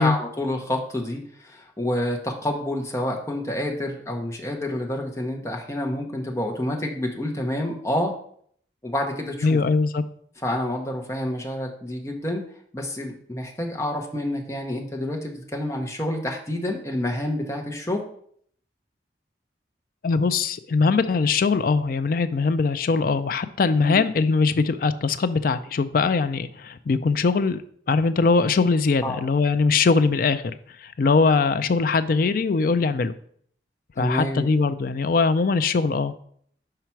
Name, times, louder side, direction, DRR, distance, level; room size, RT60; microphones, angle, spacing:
voice 1, 0.0-8.1 8.8-9.6 10.4-12.5 12.7-18.0 23.8-24.0 29.0-29.2 34.0-34.5, left 1 dB, 15° left, 1 dB, 0.9 m, -28 dB
voice 2, 9.4-10.0 20.0-27.6 27.9-33.1 34.0-36.1, left 4 dB, 50° left, 12 dB, 0.4 m, -21 dB
5.7 x 4.9 x 4.5 m, 0.63 s
head